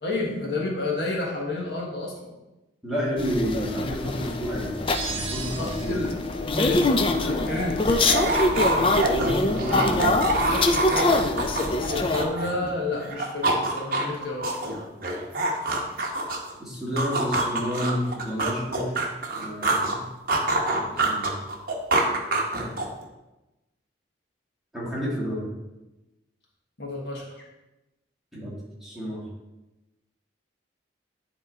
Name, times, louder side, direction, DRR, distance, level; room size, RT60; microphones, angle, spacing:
voice 1, 0.0-2.3 5.5-6.1 6.5-8.0 11.9-14.5 26.8-27.2, left 2 dB, 60° left, -2 dB, 1.4 m, -30 dB
voice 2, 2.8-5.9 9.1-10.2 16.6-18.9 19.3-20.1 20.7-21.4 22.5-22.8 24.7-25.5 28.3-29.3, equal, ahead, -7 dB, 2.0 m, -30 dB
sound 1, 3.2-12.2, left 2 dB, 30° left, 0.4 m, -24 dB
sound 2, 4.9-6.2, right 6 dB, 30° right, 0.6 m, -35 dB
sound 3, 7.0-7.1 7.2-12.7 13.0-16.5 17.0-20.0 20.3-23.0, right 2 dB, 50° right, 0.9 m, -26 dB
9.6 x 3.6 x 4.1 m, 1.0 s
head